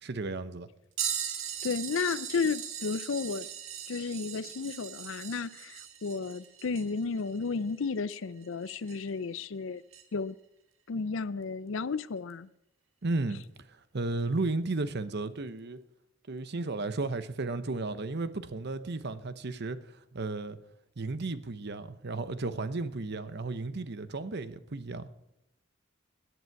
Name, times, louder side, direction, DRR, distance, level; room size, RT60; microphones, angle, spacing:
voice 1, 0.0-0.7 13.0-13.4 13.7-15.8 16.3-20.6 21.0-25.1, right 3 dB, 55° right, 0.9 m, -34 dB
sound 1, 1.0-9.2 9.9-10.0 12.3-12.4 13.4-13.6 14.7-14.8, right 9 dB, 75° right, 1.8 m, -39 dB
voice 2, 1.6-3.5 3.9-9.8 10.1-10.4 10.9-12.5, left 4 dB, 65° left, 0.5 m, -33 dB
17.5 x 11.0 x 4.7 m
head